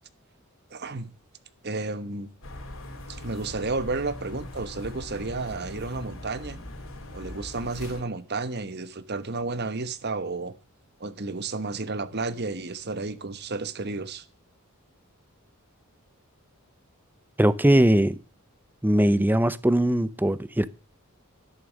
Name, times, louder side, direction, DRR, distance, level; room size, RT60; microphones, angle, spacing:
voice 1, 0.7-1.1 1.6-2.3 3.1-6.6 7.1-10.5 11.0-14.2, right 3 dB, 50° right, 1.2 m, -32 dB
sound 1, 2.4-8.0, left 1 dB, 65° left, 3.1 m, -40 dB
voice 2, 17.4-18.2 18.8-20.7, right 1 dB, 10° right, 0.7 m, -20 dB
13.0 x 10.5 x 6.3 m
head